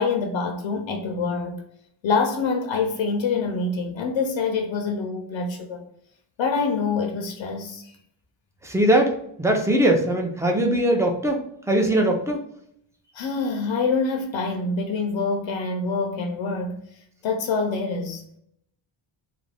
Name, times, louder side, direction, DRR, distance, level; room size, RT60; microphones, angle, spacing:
voice 1, 0.0-1.6 2.0-5.8 6.4-7.8 13.1-16.8 17.2-18.2, left 4 dB, 70° left, 0.6 m, -25 dB
voice 2, 8.6-12.5, right 1 dB, 5° right, 0.5 m, -21 dB
2.4 x 2.1 x 3.2 m
cardioid pair, 95°, 48 cm